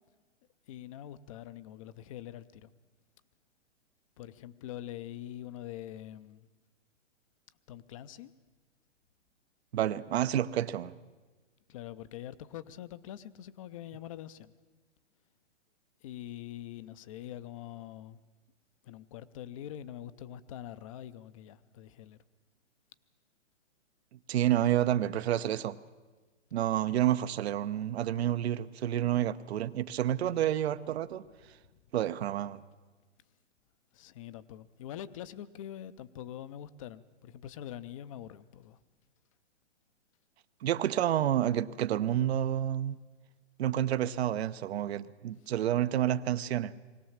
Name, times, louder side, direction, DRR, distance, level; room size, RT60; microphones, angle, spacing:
voice 1, 0.7-2.7 4.2-6.5 7.7-8.3 11.7-14.5 16.0-18.2 18.8-22.2 31.3-31.8 33.9-38.8, left 11 dB, 30° left, 0.5 m, -44 dB
voice 2, 9.7-10.9 24.3-25.8 26.5-31.2 31.9-32.6 40.6-43.0 43.6-46.7, right 11 dB, 60° right, 0.8 m, -29 dB
21.0 x 17.5 x 7.2 m
hypercardioid pair, 150°, 36 cm